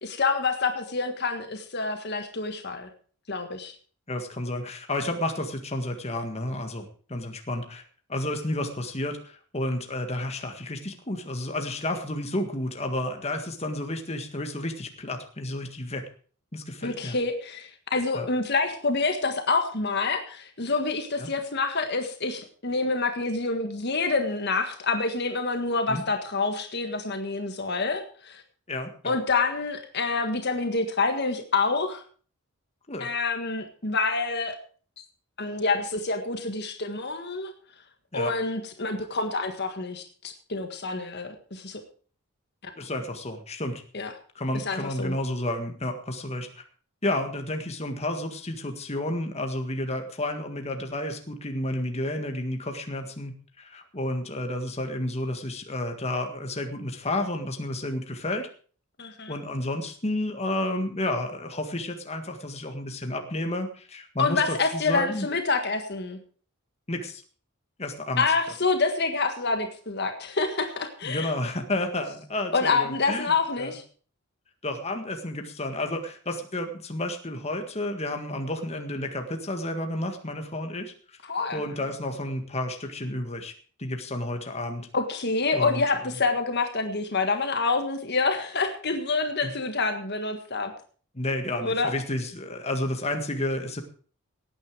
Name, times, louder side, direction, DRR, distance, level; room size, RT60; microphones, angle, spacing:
voice 1, 0.0-2.9 3.3-3.7 16.8-28.4 29.0-32.0 33.0-34.6 35.4-37.5 38.1-41.8 43.9-44.1 44.5-45.1 59.0-59.3 64.2-66.2 68.2-71.3 72.5-73.8 81.3-81.6 84.9-90.7 91.6-91.9, left 4 dB, 50° left, 6 dB, 1.6 m, -27 dB
voice 2, 4.1-7.8 8.1-16.0 16.5-17.1 18.1-18.2 21.2-21.3 25.9-26.0 28.7-29.2 32.9-33.1 38.1-38.3 42.8-43.8 44.3-46.6 47.0-58.5 59.3-65.3 66.9-67.2 67.8-68.2 71.0-73.3 73.6-73.7 74.6-81.2 81.5-83.5 83.8-84.9 85.5-85.8 89.4-89.5 91.1-93.8, left 1 dB, 30° left, 5 dB, 1.8 m, -31 dB
17.5 x 9.4 x 4.9 m, 0.42 s
head